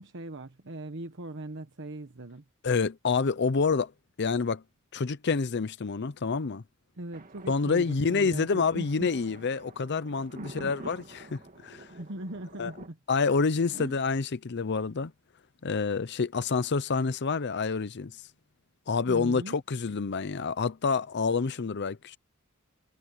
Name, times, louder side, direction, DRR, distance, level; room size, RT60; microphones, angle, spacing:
voice 1, 0.0-2.4 6.9-9.1 10.3-10.7 11.9-13.0 13.7-14.0 19.1-19.6, right 2 dB, 60° right, 1.2 m, -40 dB
voice 2, 2.6-3.9 4.2-4.6 4.9-6.6 7.5-11.9 12.6-12.7 13.1-15.1 15.6-18.2 18.9-22.2, left 4 dB, 55° left, 0.6 m, -28 dB
Thunder, 7.1-12.9, right 2 dB, 40° right, 1.9 m, -48 dB
head